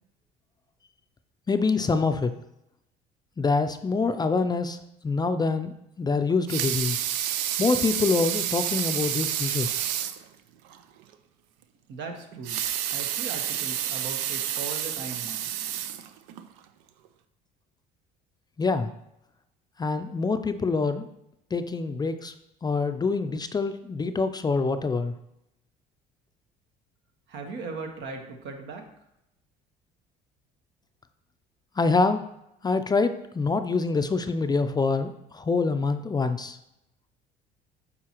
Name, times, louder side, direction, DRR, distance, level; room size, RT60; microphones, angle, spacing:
voice 1, 1.5-2.3 3.4-4.8 5.0-7.0 7.6-9.9 18.6-18.9 19.8-21.1 21.5-22.3 22.6-25.1 31.8-32.2 32.6-36.6, left 4 dB, 20° left, 9 dB, 0.4 m, -25 dB
Water tap faucet / Sink (filling or washing) / Liquid, 6.3-10.2 10.7-10.8 11.1-11.2 12.3-16.5 17.0-17.1, right 11 dB, 90° right, 0.5 m, -29 dB
voice 2, 11.9-12.6 12.9-15.5 27.3-28.8, right 4 dB, 70° right, 3 dB, 1.2 m, -38 dB
8.5 x 4.2 x 3.0 m, 0.83 s
supercardioid pair, 85°, 19 cm